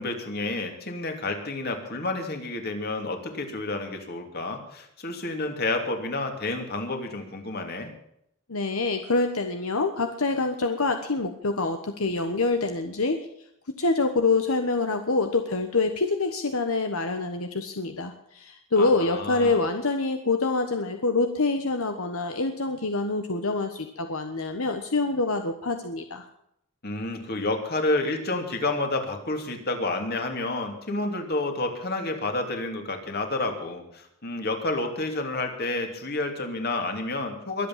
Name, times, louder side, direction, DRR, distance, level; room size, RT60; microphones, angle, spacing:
voice 1, 0.0-7.9 18.8-19.6 26.8-37.7, left 2 dB, 45° left, 4 dB, 2.8 m, -30 dB
voice 2, 8.5-13.2 13.8-26.3, left 3 dB, 75° left, 6 dB, 1.2 m, -26 dB
22.5 x 8.4 x 7.4 m, 0.75 s
head